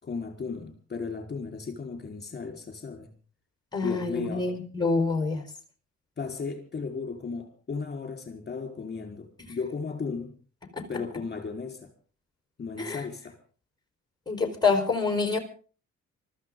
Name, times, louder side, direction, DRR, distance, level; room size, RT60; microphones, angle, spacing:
voice 1, 0.0-3.1 3.8-4.5 6.2-10.3 10.9-11.9 12.6-13.4, left 4 dB, 35° left, 4 dB, 4.6 m, -35 dB
voice 2, 3.7-5.4 10.7-10.9 12.8-13.0 14.3-15.4, left 4 dB, 15° left, 5 dB, 4.8 m, -26 dB
24.5 x 14.5 x 3.9 m, 0.39 s
cardioid pair, 90°, 30 cm